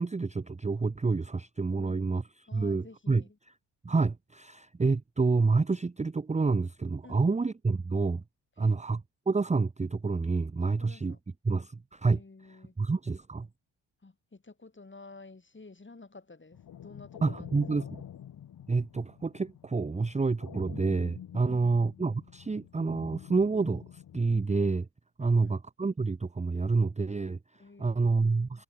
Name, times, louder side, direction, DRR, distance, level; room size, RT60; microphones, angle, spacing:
voice 1, 0.0-2.2 2.5-3.2 3.8-8.2 8.6-9.0 9.3-11.2 11.4-12.2 12.8-13.5 17.2-17.9 18.7-24.9 25.2-27.4 27.8-28.6, right 4 dB, 15° right, 0.8 m, -28 dB
voice 2, 1.7-2.2 2.5-3.4 7.0-7.4 8.6-8.9 10.8-11.2 12.1-12.7 14.0-18.0 21.4-21.8 25.2-25.6 27.6-28.5, left 3 dB, 25° left, 4.7 m, -51 dB
sound 1, 16.5-24.4, left 10 dB, 45° left, 1.0 m, -48 dB
supercardioid pair, 55°, 46 cm